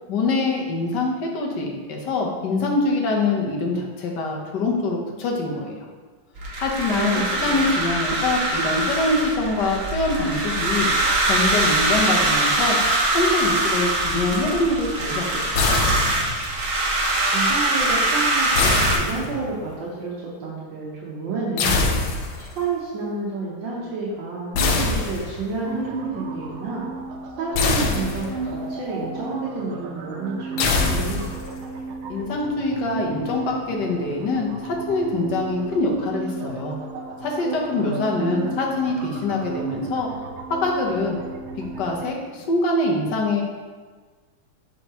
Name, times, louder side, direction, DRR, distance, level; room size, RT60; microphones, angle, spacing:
voice 1, 0.1-5.8 6.6-10.9 11.3-12.8 13.1-15.9 32.1-36.8 37.2-40.1 40.6-41.2 41.8-43.4, left 2 dB, 60° left, 0 dB, 1.6 m, -24 dB
sound 1, 6.4-19.0, right 2 dB, 50° right, 1.2 m, -23 dB
voice 2, 6.9-7.6 17.3-21.9 22.3-26.9 27.4-31.2 37.7-38.5, right 3 dB, 65° right, -6 dB, 1.7 m, -30 dB
sound 2, 15.5-16.5 18.5-19.6 21.6-22.5 24.5-25.6 27.5-28.5 30.6-31.6, left 3 dB, 80° left, 1.6 m, -23 dB
sound 3, 25.6-42.1, right 3 dB, 85° right, 1.6 m, -34 dB
9.6 x 4.6 x 3.0 m, 1.5 s
omnidirectional pair, 2.3 m